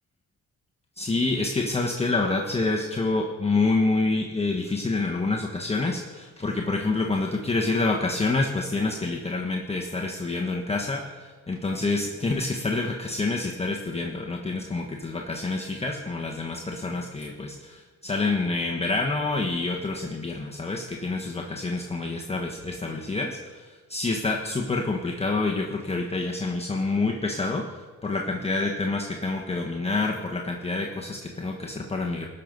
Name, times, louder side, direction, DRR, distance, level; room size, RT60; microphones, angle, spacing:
voice 1, 1.0-32.3, left 3 dB, 20° left, -1 dB, 1.2 m, -27 dB
18.5 x 6.7 x 5.4 m, 1.4 s
cardioid pair, 90°, 30 cm